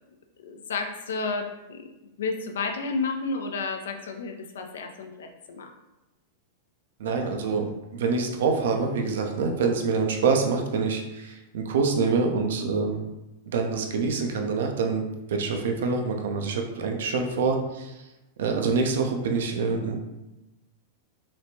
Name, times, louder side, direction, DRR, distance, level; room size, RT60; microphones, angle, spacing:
voice 1, 0.4-1.9 2.2-5.7, left 4 dB, 65° left, 4 dB, 0.4 m, -31 dB
voice 2, 7.0-7.7 7.9-13.0 13.5-18.1 18.4-20.0, right 4 dB, 60° right, 3 dB, 0.5 m, -26 dB
3.2 x 3.1 x 2.7 m, 0.98 s
figure-of-eight pair, 95°, 0 cm